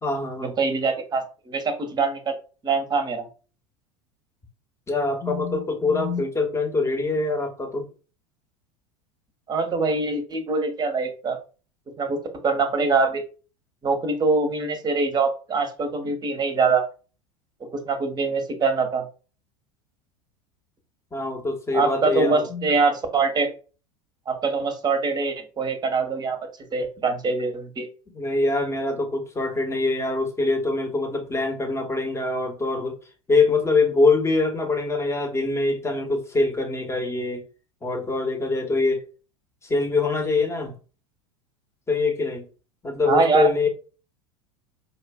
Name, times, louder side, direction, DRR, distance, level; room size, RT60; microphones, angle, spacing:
voice 1, 0.0-0.5 4.9-7.9 16.0-16.1 21.1-22.7 28.1-33.0 33.3-37.4 37.8-39.0 39.6-40.7 41.9-42.5 42.8-43.7, left 3 dB, 15° left, 1.0 m, -24 dB
voice 2, 0.6-2.3 2.6-3.3 9.5-11.4 12.0-12.2 12.4-13.2 13.8-16.8 17.7-19.0 21.7-23.5 24.3-26.4 26.7-27.9 43.0-43.5, right 4 dB, 25° right, 0.9 m, -23 dB
5.2 x 2.4 x 2.3 m
figure-of-eight pair, 80°, 18 cm